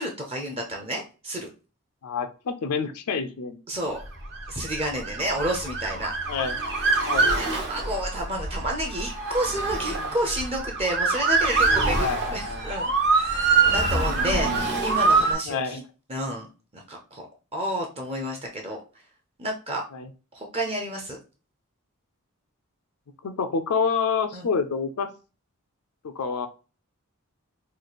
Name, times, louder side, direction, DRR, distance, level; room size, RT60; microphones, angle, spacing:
voice 1, 0.0-1.5 3.7-4.0 4.5-6.1 7.4-12.1 12.3-15.8 16.1-17.2 17.5-18.8 19.4-19.8 20.3-21.2 24.3-24.5, right 1 dB, 25° right, 1 dB, 0.6 m, -30 dB
voice 2, 2.0-3.6 6.3-6.7 7.1-7.3 12.0-12.6 15.5-15.8 19.9-20.1 23.2-25.1 26.0-26.5, left 5 dB, 80° left, 7 dB, 0.4 m, -28 dB
Motor vehicle (road) / Siren, 4.2-15.3, right 4 dB, 50° right, 0.9 m, -25 dB
3.1 x 2.4 x 4.0 m, 0.33 s
head